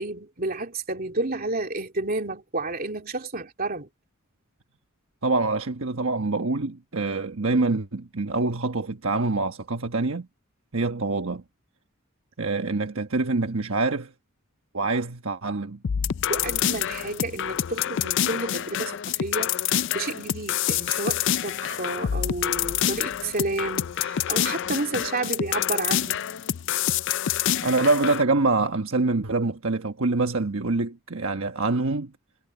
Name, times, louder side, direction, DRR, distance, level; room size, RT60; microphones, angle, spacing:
voice 1, 0.0-3.9 16.3-26.2, right 2 dB, 45° right, 2.8 m, -31 dB
voice 2, 5.2-10.3 10.7-11.4 12.4-14.1 14.7-15.8 27.6-32.1, right 3 dB, 70° right, 1.2 m, -25 dB
sound 1, 15.8-28.2, left 10 dB, 60° left, 0.4 m, -27 dB
head